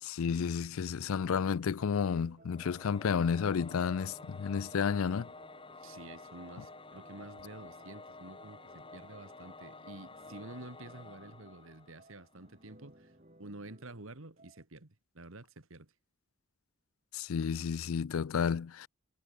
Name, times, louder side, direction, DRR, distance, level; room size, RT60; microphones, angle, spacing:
voice 1, 0.0-5.3 17.1-18.9, left 6 dB, 70° left, 0.4 m, -31 dB
sound 1, 1.1-14.6, right 1 dB, 35° right, 6.8 m, -61 dB
Singing / Musical instrument, 2.5-12.5, left 3 dB, 25° left, 2.0 m, -51 dB
voice 2, 5.8-13.1 13.4-15.9, right 2 dB, 70° right, 2.0 m, -49 dB
head